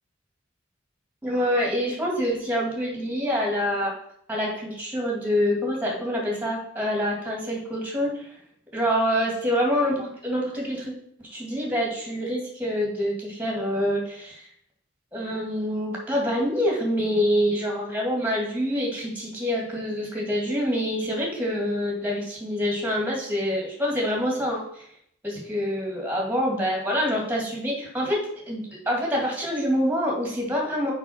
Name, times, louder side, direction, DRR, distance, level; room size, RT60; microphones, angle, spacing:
voice 1, 1.2-3.9 4.3-8.3 8.7-10.9 11.2-14.4 15.1-24.8 25.2-30.9, equal, 10° right, -2 dB, 2.2 m, -26 dB
6.1 x 5.5 x 5.7 m, 0.68 s
head